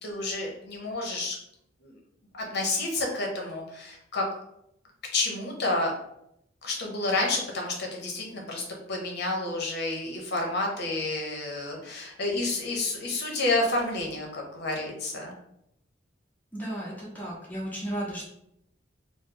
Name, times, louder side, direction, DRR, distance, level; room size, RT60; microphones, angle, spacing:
voice 1, 0.0-1.3 1.8-1.9 2.3-4.2 5.1-5.9 6.6-8.6 8.9-15.3, left 2 dB, 60° left, 0 dB, 0.8 m, -30 dB
voice 2, 16.5-18.2, right 1 dB, 10° left, -7 dB, 1.1 m, -34 dB
3.1 x 2.0 x 3.8 m, 0.76 s
head